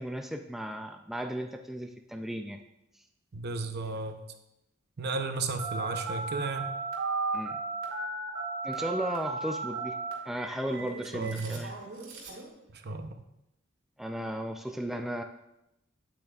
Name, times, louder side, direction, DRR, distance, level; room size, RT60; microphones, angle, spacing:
voice 1, 0.0-2.6 7.3-7.6 8.6-10.0 10.3-11.7 14.0-15.2, equal, ahead, 4 dB, 0.3 m, -35 dB
voice 2, 3.3-4.2 5.0-6.7 11.1-11.6 12.8-13.1, right 3 dB, 55° right, 7 dB, 0.7 m, -33 dB
Telephone, 5.6-12.4, right 3 dB, 80° right, 2.1 m, -35 dB
8.8 x 8.5 x 2.3 m, 0.87 s
head